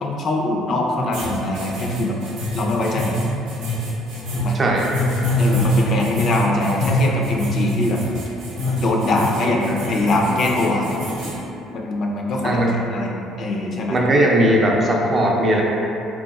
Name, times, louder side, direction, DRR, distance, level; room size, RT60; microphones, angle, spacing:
voice 1, 0.0-2.2 2.5-3.2 4.4-4.6 5.4-8.0 8.8-11.0 11.7-14.0, left 2 dB, 55° left, 0 dB, 0.3 m, -23 dB
sound 1, 1.1-11.4, left 1 dB, 90° right, 0.6 m, -24 dB
voice 2, 4.5-4.8 12.4-12.8 13.9-15.6, right 1 dB, 35° right, -2 dB, 0.4 m, -18 dB
2.8 x 2.4 x 2.3 m, 2.8 s
cardioid pair, 100°, 0 cm